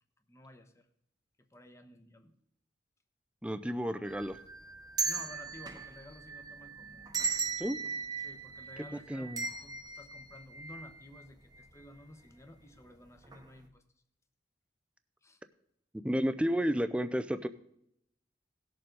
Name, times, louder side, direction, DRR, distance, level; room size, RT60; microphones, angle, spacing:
voice 1, 0.3-0.9 1.5-2.3 5.0-7.1 8.2-9.3 9.6-13.8 15.2-15.4, left 1 dB, 15° left, 8 dB, 1.0 m, -53 dB
voice 2, 3.4-4.4 7.6-7.8 9.1-9.4 16.0-17.5, equal, 5° right, 11 dB, 0.5 m, -31 dB
sound 1, 4.0-11.2 11.6-11.7 12.6-12.9 13.2-13.4, right 5 dB, 20° right, 1.0 m, -38 dB
18.0 x 6.9 x 3.9 m, 0.75 s
head